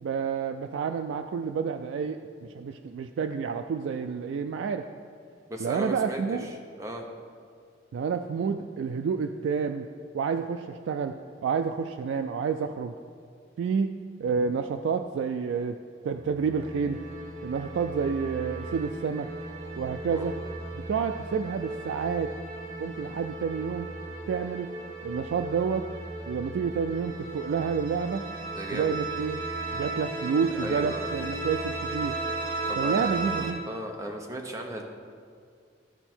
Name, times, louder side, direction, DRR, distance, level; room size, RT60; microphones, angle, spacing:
voice 1, 0.0-4.9 5.6-6.5 7.9-9.9 10.1-11.2 11.4-12.9 13.6-13.9 14.2-15.8 16.0-17.0 17.4-19.3 19.8-20.4 20.9-22.3 22.8-23.9 24.3-24.7 25.0-25.9 26.3-28.2 28.7-29.4 29.7-32.2 32.8-33.6, right 6 dB, 85° right, 7 dB, 0.3 m, -29 dB
voice 2, 5.5-6.5 6.8-7.0 20.1-20.3 28.5-29.0 30.5-31.1 32.7-33.1 33.7-34.8, right 1 dB, 15° right, 2 dB, 0.8 m, -36 dB
sound 1, 16.2-33.5, right 2 dB, 70° right, 1.2 m, -36 dB
13.0 x 4.4 x 4.4 m, 2.2 s
head